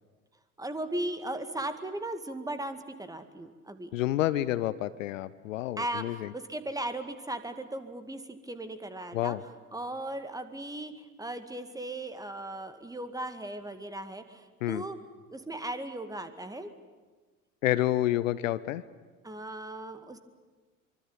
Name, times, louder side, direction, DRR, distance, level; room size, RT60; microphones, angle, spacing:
voice 1, 0.6-3.9 5.8-9.4 9.7-15.0 15.3-16.7 19.2-20.2, right 1 dB, 10° right, 10 dB, 2.1 m, -37 dB
voice 2, 3.9-6.3 9.1-9.4 14.6-14.8 17.6-18.8, left 14 dB, 65° left, 16 dB, 0.9 m, -29 dB
25.0 x 24.0 x 9.0 m, 1.3 s
figure-of-eight pair, 70°, 42 cm